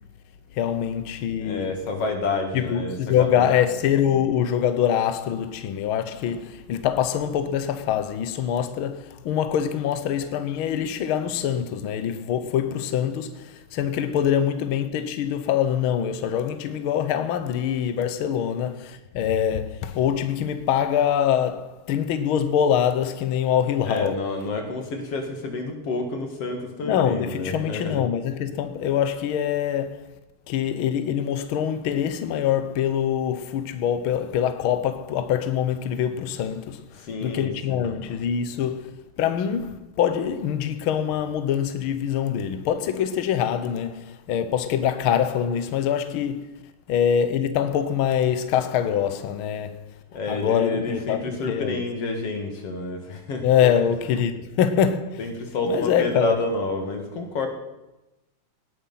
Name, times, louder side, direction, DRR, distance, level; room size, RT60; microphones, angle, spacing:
voice 1, 0.5-1.8 2.5-24.2 26.8-30.1 30.5-46.6 46.9-49.8 50.3-51.8 53.4-55.3 55.7-56.4, left 9 dB, 75° left, 1.2 m, -24 dB
voice 2, 1.4-3.5 23.8-28.0 36.9-37.9 50.1-53.7 55.2-57.5, left 2 dB, 50° left, 3.1 m, -29 dB
18.5 x 11.0 x 5.7 m
omnidirectional pair, 3.5 m